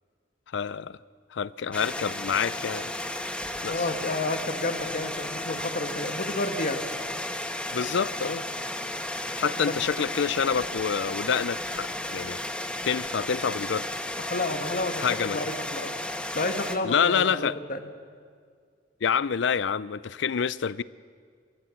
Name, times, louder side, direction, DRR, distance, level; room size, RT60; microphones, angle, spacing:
voice 1, 0.5-1.0 1.3-2.9 3.6-3.8 7.7-8.6 9.4-12.4 12.8-13.9 15.0-15.4 16.8-17.6 19.0-20.8, left 6 dB, 70° left, 0.5 m, -27 dB
sound 1, 1.7-16.8, left 1 dB, 5° left, 1.2 m, -34 dB
voice 2, 3.7-6.8 9.4-9.5 14.2-15.9 16.3-17.8, left 2 dB, 50° left, 1.5 m, -30 dB
27.0 x 14.0 x 7.2 m
head